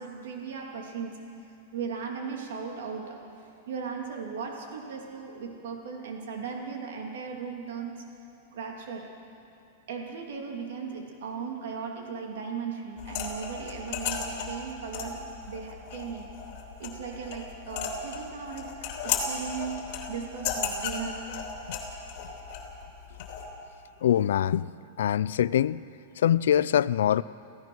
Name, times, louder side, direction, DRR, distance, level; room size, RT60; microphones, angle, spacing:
voice 1, 0.0-3.2 3.7-8.0 8.5-9.1 9.9-16.3 16.8-21.2, right 6 dB, 65° right, 1 dB, 2.7 m, -37 dB
sound 1, 13.0-23.5, left 6 dB, 40° left, 3.2 m, -35 dB
voice 2, 24.0-24.7 25.0-25.8 26.2-27.2, left 10 dB, 75° left, 18 dB, 0.5 m, -23 dB
28.5 x 16.0 x 6.3 m, 2.6 s
supercardioid pair, 170°, 0 cm